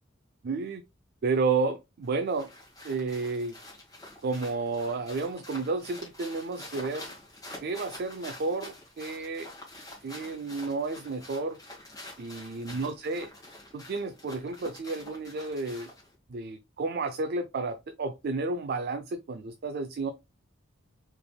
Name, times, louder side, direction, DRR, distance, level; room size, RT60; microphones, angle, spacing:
voice 1, 0.4-0.8 1.2-2.5 2.8-3.5 4.2-7.1 7.6-9.5 10.0-11.6 12.2-13.3 13.7-15.9 16.3-20.1, right 3 dB, 50° right, 0.4 m, -31 dB
sound 1, 2.0-16.1, left 1 dB, 15° left, 1.9 m, -47 dB
4.8 x 3.4 x 2.3 m
head